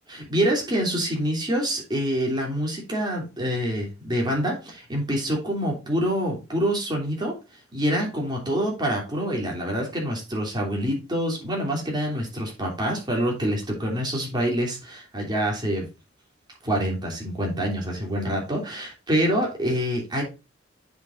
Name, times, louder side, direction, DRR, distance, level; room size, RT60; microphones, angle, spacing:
voice 1, 0.1-7.4 7.7-15.9 16.6-20.2, equal, 25° right, -1 dB, 3.0 m, -26 dB
9.3 x 5.7 x 2.5 m, 0.29 s
head